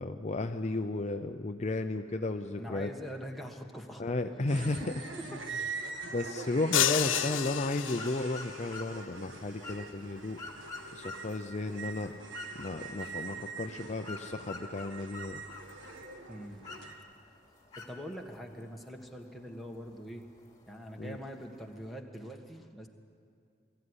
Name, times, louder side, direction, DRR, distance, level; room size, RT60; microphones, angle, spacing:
voice 1, 0.0-2.9 4.0-4.8 6.1-10.4 10.9-12.1 12.6-15.4 21.0-21.2, left 2 dB, 40° left, 7 dB, 0.6 m, -34 dB
voice 2, 2.6-4.2 4.5-5.7 16.3-16.7 17.7-20.2 20.7-22.9, equal, ahead, 0 dB, 1.5 m, -44 dB
sound 1, 4.5-16.9, right 4 dB, 80° right, 1.5 m, -44 dB
sound 2, 6.7-8.5, left 11 dB, 85° left, 0.7 m, -30 dB
sound 3, 7.9-22.0, left 3 dB, 20° left, 2.7 m, -49 dB
22.0 x 14.5 x 9.8 m, 2.4 s
head